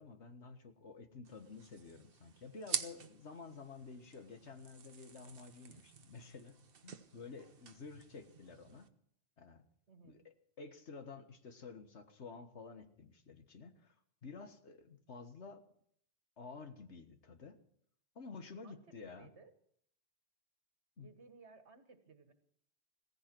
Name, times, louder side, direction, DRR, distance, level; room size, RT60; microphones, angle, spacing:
voice 1, 0.0-6.6 6.8-8.9 9.4-9.6 10.0-13.9 14.2-15.6 16.4-17.6 18.1-19.3 21.0-21.1, left 4 dB, 85° left, 7 dB, 1.7 m, -51 dB
sound 1, 1.2-8.9, right 6 dB, 60° right, 1.1 m, -47 dB
voice 2, 9.9-10.2 18.6-19.5 21.0-22.3, right 4 dB, 85° right, 8 dB, 1.8 m, -60 dB
16.5 x 15.0 x 4.5 m, 0.67 s
omnidirectional pair, 1.1 m